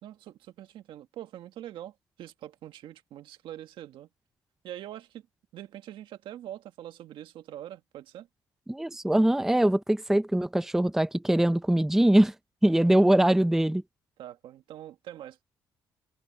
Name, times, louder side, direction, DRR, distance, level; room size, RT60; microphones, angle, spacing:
voice 1, 0.0-4.1 4.6-5.3 5.5-8.3 12.8-12.9 14.2-15.4, right 12 dB, 75° right, 1.8 m, -44 dB
voice 2, 8.7-12.3 12.6-13.8, right 1 dB, 5° right, 0.6 m, -22 dB
cardioid pair, 90°, 9 cm